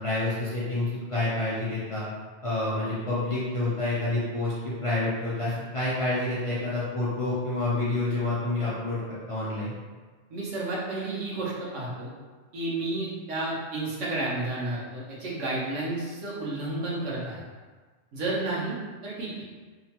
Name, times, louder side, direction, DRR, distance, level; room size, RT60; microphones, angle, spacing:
voice 1, 0.0-2.0 2.4-9.7, left 2 dB, 45° left, -10 dB, 0.4 m, -28 dB
voice 2, 10.3-12.1 12.5-17.4 18.1-18.8 19.0-19.3, right 2 dB, 90° right, -5 dB, 1.1 m, -31 dB
2.9 x 2.1 x 2.8 m, 1.4 s
omnidirectional pair, 1.2 m